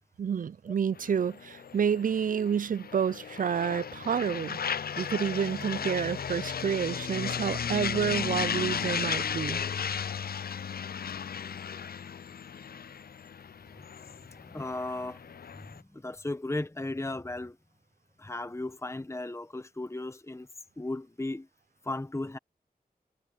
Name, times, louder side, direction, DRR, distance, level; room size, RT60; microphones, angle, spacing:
voice 1, 0.2-4.6 5.0-9.6, right 7 dB, 55° right, 0.4 m, -29 dB
sound 1, 1.0-15.8, left 7 dB, 70° left, 0.4 m, -35 dB
voice 2, 14.3-15.3 15.5-17.6 18.2-20.5 20.8-21.5 21.8-22.4, left 2 dB, 15° left, 1.0 m, -36 dB
wide cardioid pair, 55°, 16 cm